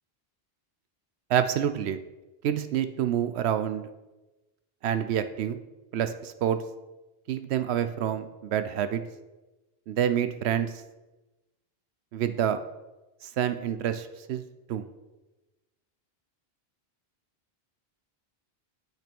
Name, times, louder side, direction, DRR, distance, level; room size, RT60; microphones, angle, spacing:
voice 1, 1.3-2.0 2.4-3.8 4.8-5.6 5.9-6.6 7.3-9.0 9.9-10.7 12.1-12.6 13.2-14.4 14.7-14.9, right 9 dB, 80° right, 10 dB, 0.8 m, -27 dB
8.8 x 5.9 x 5.2 m, 1.1 s
omnidirectional pair, 1.1 m